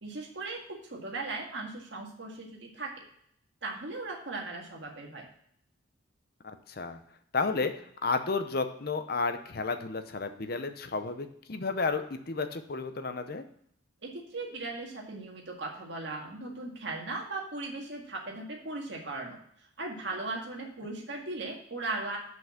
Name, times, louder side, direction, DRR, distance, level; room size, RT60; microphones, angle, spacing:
voice 1, 0.0-3.1 3.6-5.3 14.0-19.4 19.8-22.2, right 2 dB, 60° right, 0 dB, 1.8 m, -38 dB
voice 2, 6.4-7.0 7.3-7.7 8.0-13.4, left 4 dB, 50° left, 9 dB, 0.7 m, -32 dB
6.1 x 5.7 x 7.1 m, 0.67 s
head